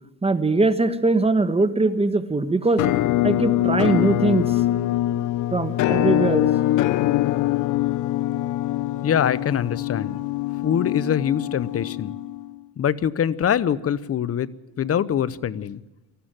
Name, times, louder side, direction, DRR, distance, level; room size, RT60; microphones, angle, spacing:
voice 1, 0.2-2.8 3.2-4.6 5.5-6.5, right 3 dB, 20° right, 11 dB, 1.3 m, -21 dB
Musical instrument, 2.8-12.6, left 14 dB, 85° left, 0.6 m, -23 dB
voice 2, 9.0-10.2 10.6-12.1 12.8-14.5 14.8-15.8, left 9 dB, 50° left, 18 dB, 0.9 m, -23 dB
19.5 x 14.5 x 9.1 m, 1.0 s
cardioid pair, 90°, 30 cm